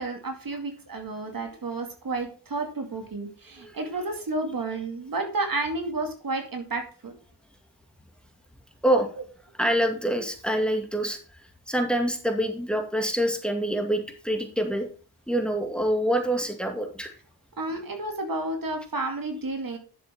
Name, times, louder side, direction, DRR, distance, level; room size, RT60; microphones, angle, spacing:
voice 1, 0.0-7.1 17.6-19.8, right 2 dB, 55° right, 5 dB, 2.3 m, -31 dB
voice 2, 9.6-11.2 11.7-14.9 15.3-17.1, right 1 dB, ahead, 4 dB, 2.3 m, -26 dB
10.5 x 7.0 x 3.7 m, 0.39 s
cardioid pair, 80°, 40 cm